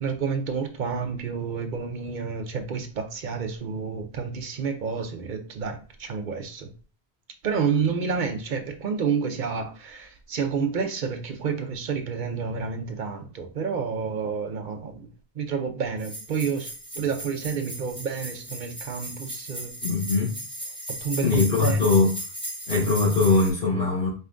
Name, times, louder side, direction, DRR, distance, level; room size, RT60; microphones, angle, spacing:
voice 1, 0.0-6.7 7.4-15.1 15.4-19.7 21.0-21.8, right 6 dB, 55° right, 0.7 m, -29 dB
sound 1, 16.0-23.5, right 1 dB, 5° left, 1.4 m, -36 dB
voice 2, 19.8-20.4 21.2-22.1 22.7-24.1, left 3 dB, 60° left, 2.0 m, -21 dB
4.3 x 3.4 x 2.5 m
omnidirectional pair, 1.1 m